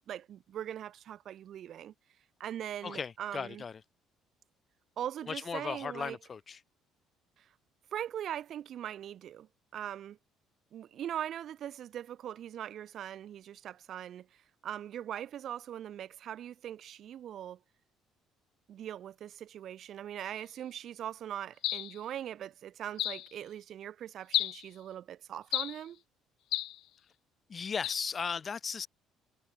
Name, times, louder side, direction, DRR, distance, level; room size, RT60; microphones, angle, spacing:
voice 1, 0.1-1.9 2.4-3.6 5.0-6.2 7.4-7.5 7.9-10.2 10.7-17.6 18.7-26.0, right 10 dB, 60° right, 6.1 m, -41 dB
voice 2, 2.8-3.8 5.3-6.6 27.5-28.9, left 6 dB, 40° left, 3.6 m, -36 dB
sound 1, 21.6-22.0 23.0-23.3 24.3-24.7 25.5-25.8 26.5-26.8 27.8-28.1, left 15 dB, 70° left, 2.7 m, -32 dB
supercardioid pair, 75°, 0 cm